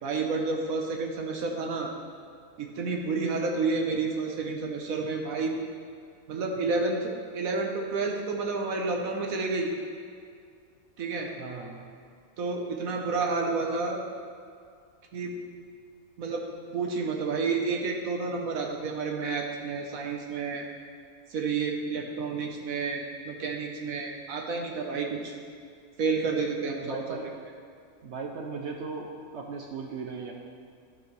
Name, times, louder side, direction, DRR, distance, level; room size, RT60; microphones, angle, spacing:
voice 1, 0.0-1.9 2.6-5.6 6.3-9.7 11.0-11.3 12.4-14.0 15.1-15.3 16.2-16.4 16.7-20.6 21.3-25.3 26.0-27.2, right 4 dB, 75° right, 1 dB, 1.3 m, -30 dB
voice 2, 11.4-11.9 26.8-27.3 28.0-30.3, right 4 dB, 60° right, 1 dB, 0.9 m, -37 dB
12.5 x 4.7 x 4.6 m, 2.3 s
omnidirectional pair, 1.5 m